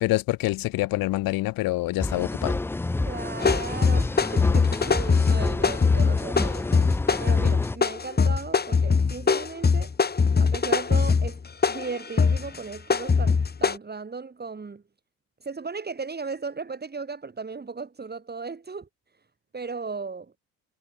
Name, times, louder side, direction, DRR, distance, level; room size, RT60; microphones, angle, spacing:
voice 1, 0.0-2.6, left 19 dB, 70° left, 1.3 m, -26 dB
sound 1, 2.0-7.8, left 2 dB, 5° left, 0.4 m, -29 dB
voice 2, 3.1-6.8 7.2-9.9 10.4-11.4 11.7-14.8 15.4-18.9 19.5-20.3, right 4 dB, 25° right, 5.0 m, -36 dB
sound 2, 3.4-13.8, left 5 dB, 25° left, 2.0 m, -22 dB
supercardioid pair, 70°, 36 cm